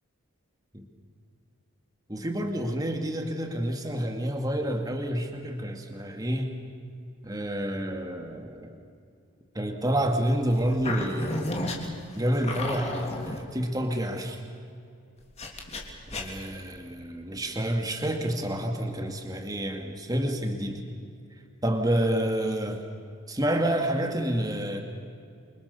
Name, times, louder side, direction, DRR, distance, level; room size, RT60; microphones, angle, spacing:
voice 1, 2.1-6.5 7.2-8.7 9.5-11.6 12.1-14.4 16.1-20.8 21.6-22.8 23.3-24.8, right 1 dB, 15° right, 4 dB, 2.2 m, -29 dB
sound 1, 10.5-13.4 15.4-16.5, left 2 dB, 30° left, 3.2 m, -33 dB
28.5 x 25.0 x 7.0 m, 2.4 s
head